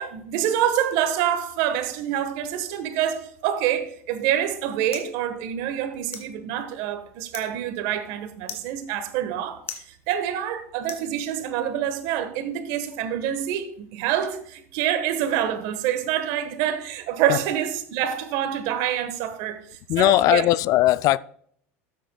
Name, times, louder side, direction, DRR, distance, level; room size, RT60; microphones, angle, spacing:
voice 1, 0.0-20.4, right 10 dB, 65° right, 1.4 m, -26 dB
sound 1, 4.1-11.7, left 7 dB, 85° left, 1.8 m, -45 dB
voice 2, 19.9-21.2, left 16 dB, 50° left, 0.3 m, -19 dB
13.0 x 9.1 x 2.3 m
hypercardioid pair, 90°, 7 cm